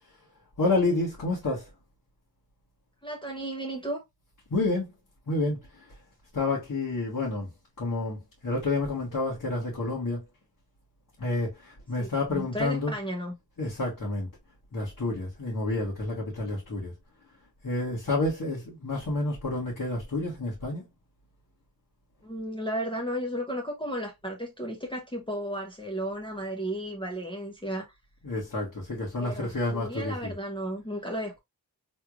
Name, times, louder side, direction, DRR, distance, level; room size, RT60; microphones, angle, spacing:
voice 1, 0.6-1.6 4.5-4.9 5.3-5.6 6.3-7.5 7.8-8.2 8.4-10.2 11.2-12.9 13.6-14.3 14.7-16.9 17.6-20.8 28.2-30.3, left 2 dB, 55° left, 1.6 m, -29 dB
voice 2, 3.0-4.0 12.0-13.3 22.2-27.9 29.2-31.4, equal, 10° left, 0.9 m, -34 dB
3.4 x 3.2 x 2.4 m
wide cardioid pair, 60°, 42 cm